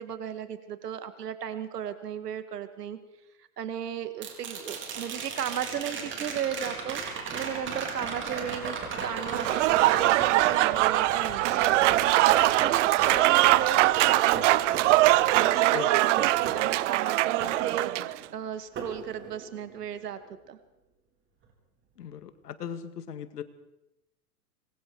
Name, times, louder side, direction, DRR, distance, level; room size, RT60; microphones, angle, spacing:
voice 1, 0.0-3.0 3.4-7.0 7.3-12.1 12.6-14.9 15.3-20.2 20.5-20.6, right 9 dB, 85° right, 10 dB, 2.0 m, -36 dB
sound 1, 4.2-18.3 18.8-19.8 22.0-22.1, right 5 dB, 25° right, 4.2 m, -36 dB
Applause / Crowd, 9.3-18.2, right 17 dB, 50° right, 0.8 m, -22 dB
voice 2, 15.7-16.0 16.4-16.5 22.0-23.4, left 8 dB, 80° left, 11 dB, 2.1 m, -38 dB
26.0 x 21.5 x 4.8 m, 0.89 s
hypercardioid pair, 130°, 46 cm